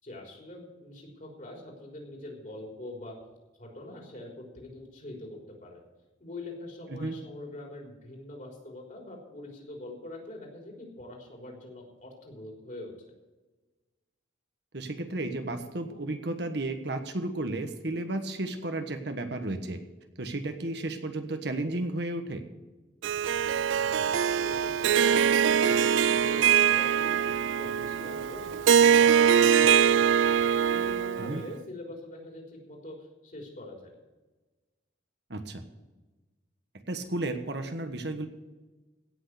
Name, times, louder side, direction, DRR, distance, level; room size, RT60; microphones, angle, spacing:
voice 1, 0.0-3.2 3.6-5.8 6.2-12.9 23.8-30.1 30.6-34.0, left 1 dB, 45° left, 0 dB, 3.7 m, -44 dB
voice 2, 14.7-19.8 20.2-22.4 31.2-31.4 35.3-35.6 36.9-38.3, right 2 dB, 60° right, 7 dB, 1.3 m, -33 dB
Harp, 23.0-31.5, right 8 dB, 85° right, 0.3 m, -23 dB
16.5 x 6.4 x 8.1 m, 1.2 s
head